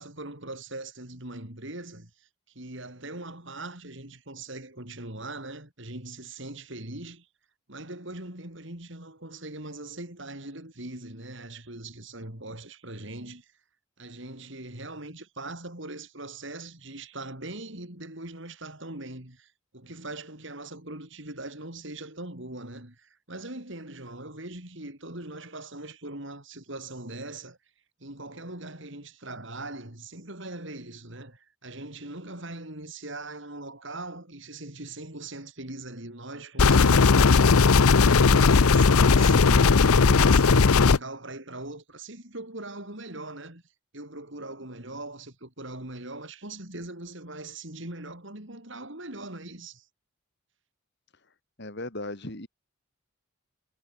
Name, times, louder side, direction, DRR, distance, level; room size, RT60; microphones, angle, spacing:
voice 1, 0.0-2.3 2.5-7.3 7.7-13.5 14.0-27.6 28.0-43.6 43.9-49.9, right 2 dB, 55° right, 4.2 m, -41 dB
sound 1, 36.6-41.0, left 4 dB, 85° left, 0.7 m, -17 dB
voice 2, 51.6-52.5, left 2 dB, 50° left, 2.9 m, -36 dB
head